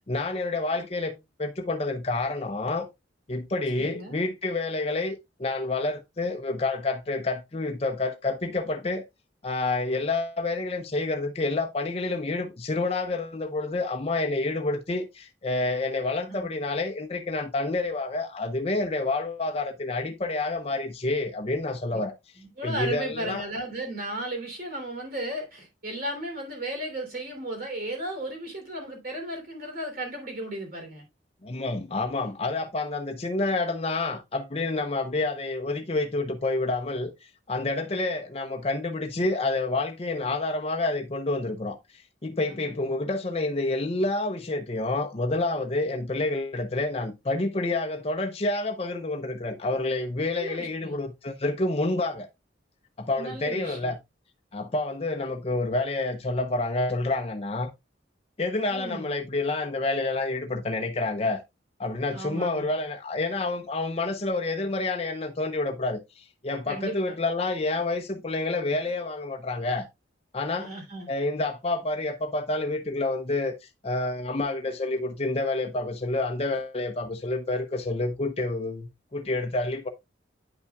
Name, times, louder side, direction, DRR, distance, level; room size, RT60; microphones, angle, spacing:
voice 1, 0.1-2.9 3.3-9.0 9.4-22.1 22.6-23.4 31.4-37.1 37.5-41.8 42.2-52.3 53.0-54.0 54.5-57.7 58.4-61.4 61.8-69.8 70.3-70.7 71.1-73.5 73.8-79.9, left 2 dB, 30° left, 0.7 m, -28 dB
voice 2, 3.8-4.2 16.3-16.5 21.9-22.0 22.4-31.1 42.5-42.9 50.3-51.0 53.2-53.9 58.7-59.1 62.1-62.8 66.7-67.1 70.6-71.1, right 1 dB, 55° right, 3.1 m, -35 dB
9.4 x 5.5 x 2.3 m
head